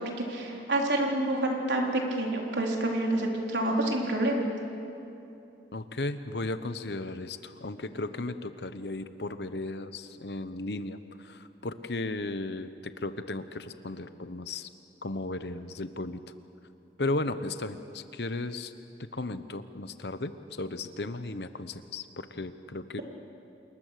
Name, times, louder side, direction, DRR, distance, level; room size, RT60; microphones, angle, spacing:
voice 1, 0.3-4.5, right 1 dB, 85° right, 0 dB, 3.9 m, -28 dB
voice 2, 5.7-14.7 15.0-16.2 17.0-18.7 19.1-20.3 20.6-23.0, left 2 dB, 70° left, 11 dB, 1.1 m, -35 dB
28.0 x 21.5 x 6.7 m, 2.8 s
head